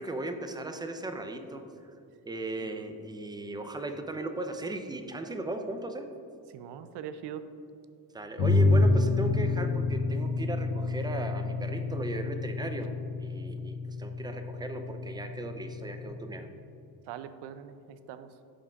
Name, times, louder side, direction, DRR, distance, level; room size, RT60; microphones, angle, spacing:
voice 1, 0.0-1.6 2.2-6.1 8.1-16.5, right 1 dB, 10° right, 6 dB, 0.5 m, -37 dB
voice 2, 6.5-7.4 17.1-18.3, right 9 dB, 65° right, 12 dB, 0.5 m, -42 dB
sound 1, 8.4-16.0, left 3 dB, 85° left, 1.3 m, -28 dB
11.0 x 3.7 x 2.4 m, 2.6 s
supercardioid pair, 65°, 44 cm